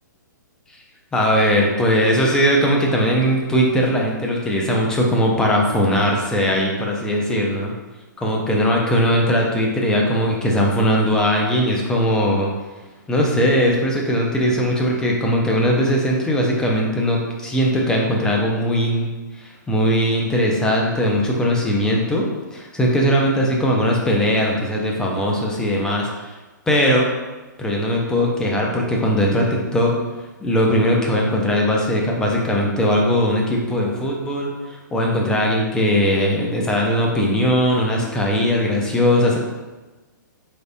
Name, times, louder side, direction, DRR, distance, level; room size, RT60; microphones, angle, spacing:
voice 1, 1.1-7.7 8.2-12.5 13.1-19.1 19.4-22.3 22.5-26.4 26.7-27.1 27.6-30.0 30.4-39.4, equal, 5° left, -1 dB, 0.4 m, -19 dB
3.8 x 3.4 x 2.6 m, 1.2 s
hypercardioid pair, 155°, 11 cm